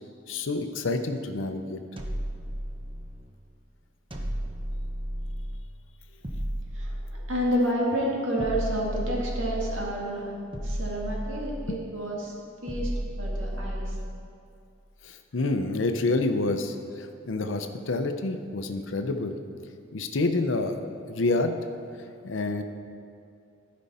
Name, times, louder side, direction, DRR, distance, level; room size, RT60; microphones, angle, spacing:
voice 1, 0.3-1.8 11.7-11.8 15.0-19.3 19.9-21.6 22.2-22.6, left 2 dB, 75° left, 7 dB, 0.7 m, -28 dB
sound 1, 2.0-3.3 4.1-5.7 6.2-7.7 8.4-10.0 10.5-11.9 12.7-14.3, equal, 25° right, 0.8 m, -33 dB
voice 2, 6.7-10.3 10.6-12.3 12.6-12.9 13.2-14.0, equal, 80° right, -3 dB, 1.9 m, -29 dB
13.5 x 5.3 x 4.2 m, 2.5 s
head